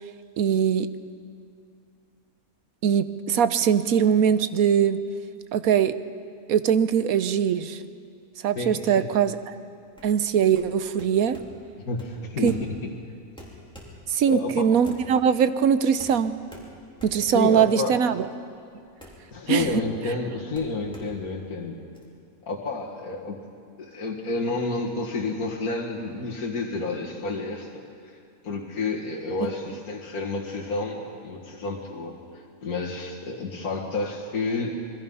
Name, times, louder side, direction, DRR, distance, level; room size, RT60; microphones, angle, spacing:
voice 1, 0.4-0.9 2.8-5.0 5.5-5.9 6.5-7.8 8.4-9.6 10.0-11.4 12.4-12.5 14.1-16.3 17.0-18.3 19.5-19.8, right 8 dB, 70° right, 12 dB, 1.2 m, -21 dB
voice 2, 8.6-9.1 11.9-12.9 14.3-14.7 17.2-18.0 19.3-21.8 22.4-23.4 23.8-27.8 28.4-34.7, left 3 dB, 75° left, -3 dB, 2.3 m, -30 dB
sound 1, 9.9-22.0, equal, 5° left, 3.5 m, -48 dB
27.0 x 21.5 x 5.6 m, 2.4 s
omnidirectional pair, 1.6 m